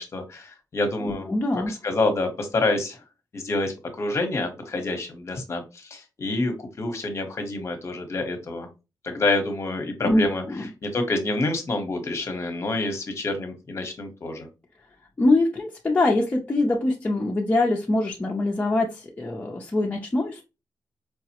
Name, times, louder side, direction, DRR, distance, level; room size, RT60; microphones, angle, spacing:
voice 1, 0.0-1.3 1.7-3.0 3.3-8.7 9.0-10.4 10.8-14.5, left 2 dB, 35° left, 6 dB, 0.8 m, -27 dB
voice 2, 1.0-1.7 10.0-10.7 15.2-20.4, left 2 dB, 20° left, -1 dB, 0.4 m, -23 dB
4.6 x 2.0 x 2.8 m, 0.28 s
wide cardioid pair, 135°, 8 cm